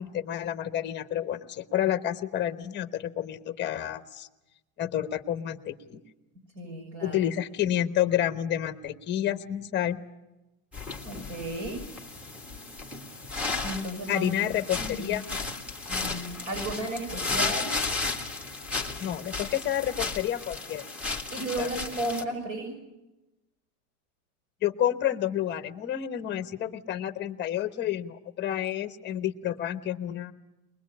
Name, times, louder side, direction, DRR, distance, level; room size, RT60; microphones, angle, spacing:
voice 1, 0.0-4.3 4.8-6.0 7.0-10.0 14.1-15.2 19.0-20.8 21.6-21.7 24.6-30.3, left 11 dB, 25° left, 10 dB, 1.1 m, -29 dB
voice 2, 6.5-7.2 11.0-11.8 12.2-12.3 13.6-14.3 14.7-15.1 15.9-17.7 21.3-22.7, right 1 dB, 55° right, 3 dB, 6.9 m, -34 dB
sound 1, 10.7-22.2, left 3 dB, 5° right, 1.7 m, -34 dB
22.5 x 21.0 x 8.6 m, 1.0 s
supercardioid pair, 150°, 43 cm